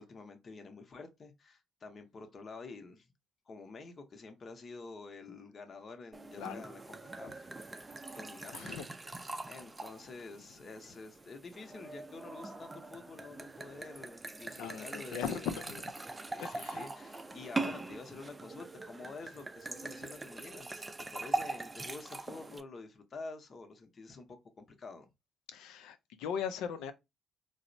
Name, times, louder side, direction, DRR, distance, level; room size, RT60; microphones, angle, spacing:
voice 1, 0.0-3.1 3.5-8.7 9.0-9.1 9.5-15.8 16.3-20.9 21.1-25.1, left 3 dB, 45° left, 0.7 m, -49 dB
sound 1, 6.1-22.6, right 3 dB, 20° right, 0.4 m, -42 dB
voice 2, 8.5-8.9 14.6-15.8 16.4-16.8 25.5-26.9, left 7 dB, 85° left, 0.4 m, -38 dB
4.0 x 2.0 x 2.6 m
supercardioid pair, 70°, 0 cm